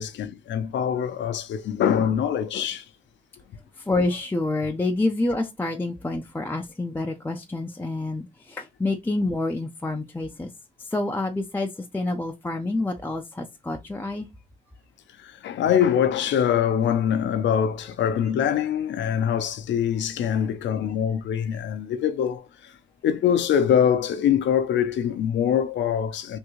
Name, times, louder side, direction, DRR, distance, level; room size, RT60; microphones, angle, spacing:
voice 1, 0.0-2.8 15.2-22.7 23.0-26.4, left 9 dB, 65° left, 0.6 m, -24 dB
voice 2, 3.8-10.5 10.8-14.3 20.2-20.5, left 2 dB, 10° left, 0.5 m, -28 dB
3.5 x 2.6 x 3.0 m
cardioid pair, 90°, 20 cm